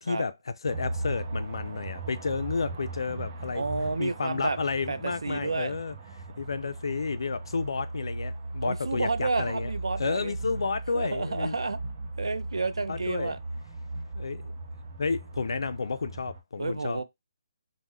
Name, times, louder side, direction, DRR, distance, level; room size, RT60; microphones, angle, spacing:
voice 1, 0.0-0.3 0.6-3.6 4.0-5.9 6.4-9.7 10.0-11.5 12.9-13.3 14.2-14.5 15.0-17.0, left 4 dB, 75° left, 0.3 m, -31 dB
sound 1, 0.7-16.4, right 2 dB, 35° right, 0.6 m, -38 dB
voice 2, 3.5-4.6 4.9-5.8 8.6-10.3 10.9-11.8 12.2-13.4 16.6-17.0, right 3 dB, 90° right, 0.4 m, -30 dB
3.0 x 2.1 x 3.4 m
hypercardioid pair, 155°, 3 cm